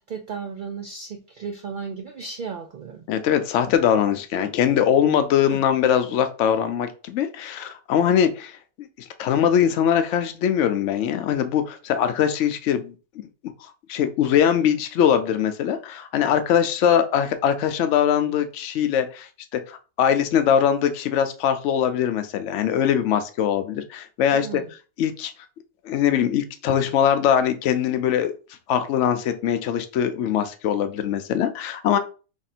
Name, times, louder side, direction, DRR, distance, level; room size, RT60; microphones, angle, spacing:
voice 1, 0.0-3.1 4.3-4.5 5.4-5.6 24.3-24.7, right 5 dB, 65° right, 5 dB, 0.4 m, -35 dB
voice 2, 3.1-8.9 9.2-12.9 13.9-24.5 25.0-25.3 25.8-28.3 28.7-32.0, left 9 dB, 70° left, 9 dB, 0.9 m, -22 dB
3.5 x 2.6 x 4.1 m, 0.35 s
omnidirectional pair, 1.4 m